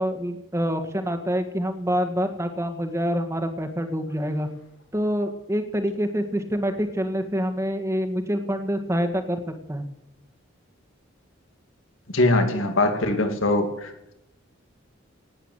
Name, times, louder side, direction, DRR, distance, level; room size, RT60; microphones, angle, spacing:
voice 1, 0.0-4.5 4.9-9.8, equal, 15° right, 6 dB, 1.7 m, -26 dB
voice 2, 12.1-14.1, left 2 dB, 85° left, 5 dB, 2.5 m, -22 dB
18.5 x 8.3 x 8.1 m, 0.88 s
head